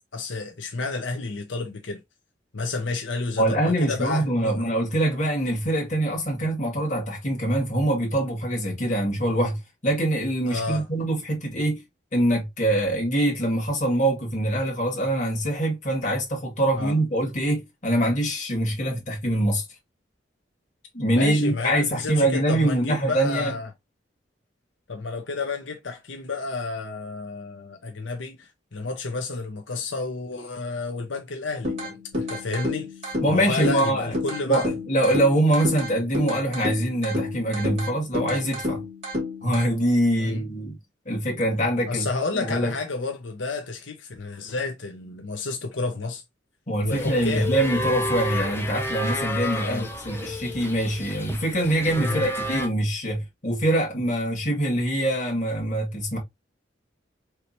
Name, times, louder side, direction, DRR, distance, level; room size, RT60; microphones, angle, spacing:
voice 1, 0.1-2.0 2.5-4.5 10.4-10.8 16.7-17.0 21.1-23.7 24.9-32.9 33.3-34.6 40.1-40.4 41.9-46.2 46.8-47.5 49.6-49.9 52.0-52.3, left 3 dB, 85° left, 0.9 m, -31 dB
voice 2, 3.4-11.8 12.1-19.6 20.9-23.5 33.2-34.2 34.5-38.8 39.4-40.8 41.1-42.1 42.3-42.7 46.7-56.2, right 1 dB, 40° left, 2.1 m, -24 dB
sound 1, 31.6-39.6, left 2 dB, 35° right, 2.6 m, -31 dB
sound 2, 46.9-52.7, left 1 dB, 15° left, 0.9 m, -31 dB
4.7 x 3.3 x 2.7 m
head